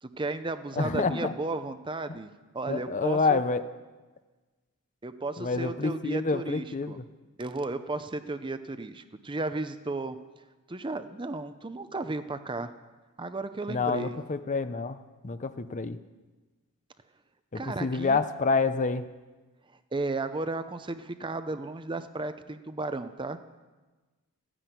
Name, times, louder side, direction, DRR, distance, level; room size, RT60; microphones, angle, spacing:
voice 1, 0.0-3.4 5.0-7.0 7.4-10.2 10.7-12.7 13.2-14.2 17.5-18.2 19.9-23.4, right 2 dB, 20° right, 10 dB, 0.7 m, -34 dB
voice 2, 0.8-1.3 2.1-2.2 2.7-3.6 5.4-7.1 13.7-16.0 17.5-19.1, left 4 dB, 35° left, 11 dB, 0.6 m, -28 dB
15.0 x 10.0 x 9.3 m, 1.2 s
head